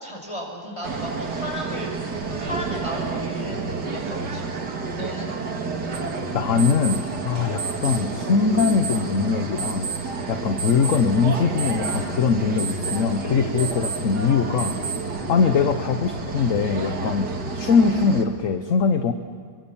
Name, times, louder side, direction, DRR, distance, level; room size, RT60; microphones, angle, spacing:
voice 1, 0.0-2.0 2.3-4.7 5.0-5.3, equal, 20° left, 1 dB, 5.5 m, -34 dB
sound 1, 0.8-18.2, right 3 dB, 85° right, 2.5 m, -30 dB
sound 2, 5.9-15.3, right 5 dB, 50° right, 4.1 m, -34 dB
voice 2, 6.3-9.9 10.3-14.8 15.3-19.1, left 5 dB, 55° left, 9 dB, 1.2 m, -22 dB
28.0 x 23.0 x 7.2 m, 2.1 s
omnidirectional pair, 1.7 m